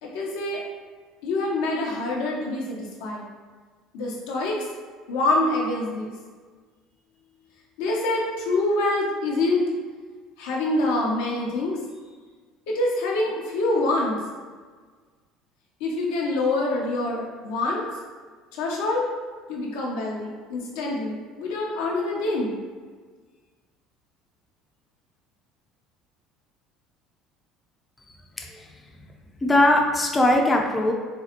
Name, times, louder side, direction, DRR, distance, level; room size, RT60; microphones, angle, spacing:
voice 1, 0.0-0.6 1.2-3.2 3.9-4.6 5.1-6.1 7.8-9.7 10.4-11.8 12.7-14.2 15.8-17.8 18.5-19.1 19.5-22.6, left 2 dB, 65° left, -3 dB, 0.6 m, -25 dB
voice 2, 28.4-28.7 29.4-30.9, left 1 dB, 20° left, 1 dB, 0.6 m, -20 dB
4.2 x 2.3 x 2.9 m, 1.5 s
figure-of-eight pair, 60°, 0 cm